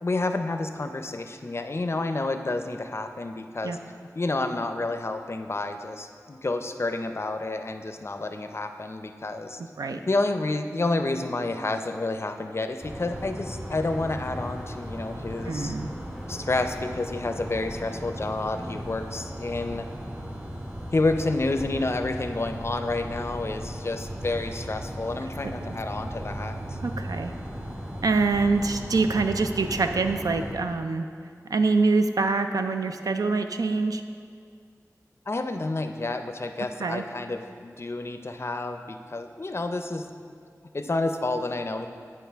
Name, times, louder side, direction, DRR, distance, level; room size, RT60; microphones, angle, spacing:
voice 1, 0.0-3.8 4.2-9.6 9.9-15.7 16.3-19.9 20.9-26.8 35.3-40.1 40.7-41.9, left 2 dB, 45° left, 7 dB, 0.4 m, -29 dB
voice 2, 9.6-10.0 15.5-15.9 25.4-25.5 26.8-27.3 28.0-31.1 31.5-34.0 36.8-37.0, right 3 dB, 80° right, 7 dB, 0.4 m, -25 dB
sound 1, 12.8-30.5, equal, 30° right, 1.6 m, -37 dB
sound 2, 13.9-22.3, equal, 10° right, 0.7 m, -48 dB
9.4 x 4.7 x 3.4 m, 2.2 s
wide cardioid pair, 45°, 6 cm